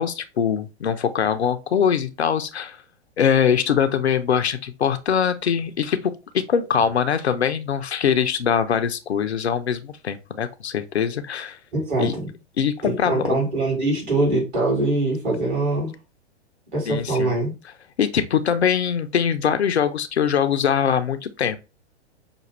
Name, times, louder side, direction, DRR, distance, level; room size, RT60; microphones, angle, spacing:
voice 1, 0.0-2.8 3.2-11.6 12.0-12.1 12.6-13.4 16.9-17.4 18.0-21.6, left 7 dB, 70° left, 0.5 m, -22 dB
voice 2, 11.7-12.3 12.8-15.9 16.7-17.5, right 2 dB, 35° right, 2.7 m, -23 dB
5.8 x 2.3 x 3.1 m
figure-of-eight pair, 105°, 33 cm